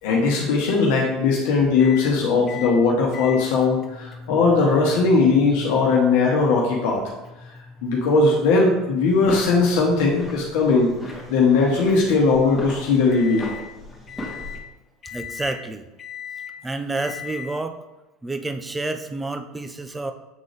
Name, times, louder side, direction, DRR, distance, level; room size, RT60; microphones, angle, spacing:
voice 1, 0.0-7.0 7.8-13.5, left 4 dB, 70° left, -2 dB, 1.0 m, -19 dB
sound 1, 1.8-2.1 2.5-2.8 3.1-13.7 14.1-14.6 15.0-15.6 16.0-16.5 16.9-17.5, left 7 dB, 35° left, 0.7 m, -40 dB
sound 2, 9.1-14.6, equal, 5° left, 1.9 m, -38 dB
voice 2, 15.1-15.9 16.6-17.8 18.2-20.1, right 2 dB, 15° right, 8 dB, 0.6 m, -29 dB
7.3 x 3.8 x 3.3 m, 1.0 s
hypercardioid pair, 90°, 0 cm